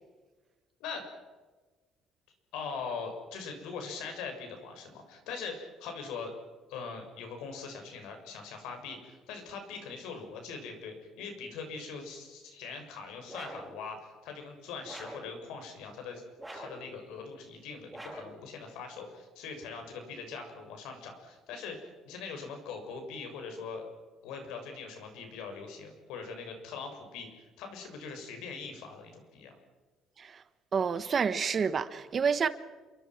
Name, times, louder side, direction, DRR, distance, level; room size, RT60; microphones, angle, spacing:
voice 1, 2.5-6.3 6.7-16.2 16.5-23.8 24.2-29.5, left 5 dB, 90° left, 6.8 m, -42 dB
sound 1, 13.3-13.8 14.9-15.3 16.4-16.9 17.9-18.4, right 1 dB, 10° right, 7.0 m, -44 dB
voice 2, 30.7-32.5, right 6 dB, 35° right, 1.3 m, -29 dB
28.0 x 23.5 x 6.2 m
cardioid pair, 140°, 0 cm